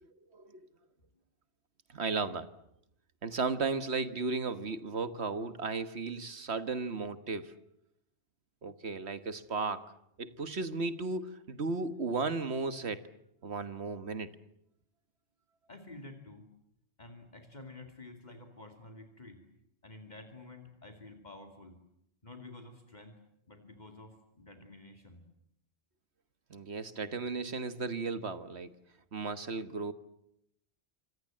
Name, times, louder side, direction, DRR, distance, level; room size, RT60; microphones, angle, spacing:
voice 1, 0.0-0.7 1.9-2.5 3.2-7.6 8.6-9.9 10.2-13.1 13.4-14.3 26.5-28.7 29.1-29.9, right 4 dB, 75° right, 12 dB, 1.8 m, -35 dB
voice 2, 15.7-16.5 17.0-19.4 19.8-21.8 22.2-23.2 23.5-25.2, left 2 dB, 40° left, 5 dB, 2.8 m, -50 dB
27.5 x 26.0 x 7.7 m, 0.76 s
omnidirectional pair, 1.1 m